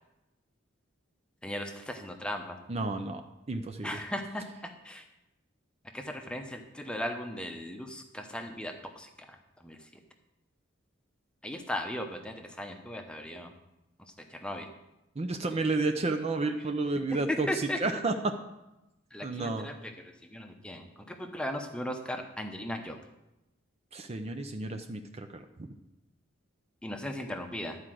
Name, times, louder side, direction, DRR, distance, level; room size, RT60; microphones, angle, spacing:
voice 1, 1.4-2.6 3.8-4.4 4.8-5.0 5.9-9.4 9.6-9.8 11.4-13.5 14.3-14.7 17.5-18.0 19.1-19.9 20.3-23.0 26.8-27.8, left 1 dB, 5° left, 5 dB, 0.8 m, -37 dB
voice 2, 2.7-3.2 3.5-4.0 15.2-18.3 19.2-19.7 23.9-25.4, right 3 dB, 30° right, 6 dB, 0.5 m, -31 dB
12.0 x 4.8 x 7.6 m, 0.94 s
head